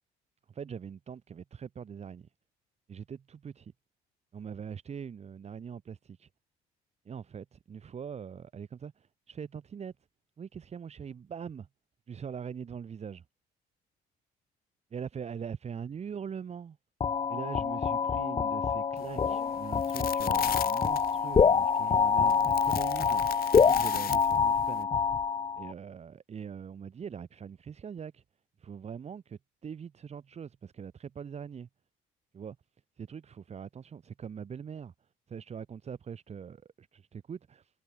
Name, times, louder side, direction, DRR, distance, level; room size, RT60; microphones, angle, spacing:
voice 1, 0.5-2.3 2.9-3.7 4.3-6.3 7.1-9.9 10.4-11.7 12.1-13.2 14.9-16.8 17.3-25.0 25.6-28.2 28.6-31.7 32.3-32.6 33.0-34.9 35.3-37.7, right 7 dB, 40° right, 5.6 m, -42 dB
sound 1, 17.0-25.7, left 6 dB, 30° left, 0.9 m, -26 dB
sound 2, 19.0-24.8, left 12 dB, 60° left, 1.9 m, -41 dB
cardioid pair, 110°, 17 cm